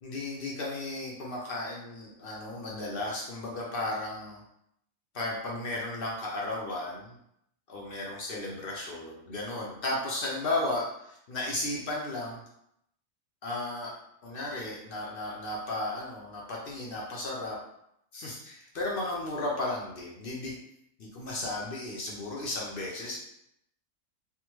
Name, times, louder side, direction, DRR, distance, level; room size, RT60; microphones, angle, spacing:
voice 1, 0.0-4.4 5.1-7.1 7.7-12.4 13.4-13.9 14.2-17.6 18.1-20.5 21.0-23.2, left 2 dB, 55° left, -3 dB, 0.7 m, -34 dB
3.4 x 2.1 x 3.0 m, 0.76 s
omnidirectional pair, 1.3 m